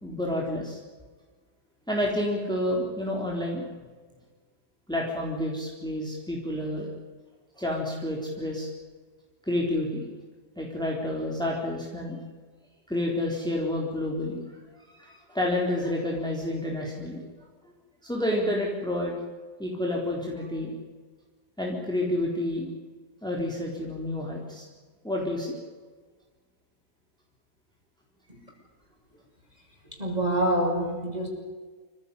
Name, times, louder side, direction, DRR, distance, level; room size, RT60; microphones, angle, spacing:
voice 1, 0.0-0.8 1.9-3.6 4.9-6.9 7.6-8.7 9.4-10.0 10.6-12.2 12.9-17.2 18.0-19.1 19.6-20.7 21.6-22.7 23.2-24.7 25.0-25.6, left 1 dB, 5° left, -2 dB, 4.0 m, -29 dB
voice 2, 29.9-31.3, right 1 dB, 25° right, 0 dB, 7.0 m, -26 dB
28.0 x 15.5 x 10.0 m, 1.4 s
omnidirectional pair, 1.6 m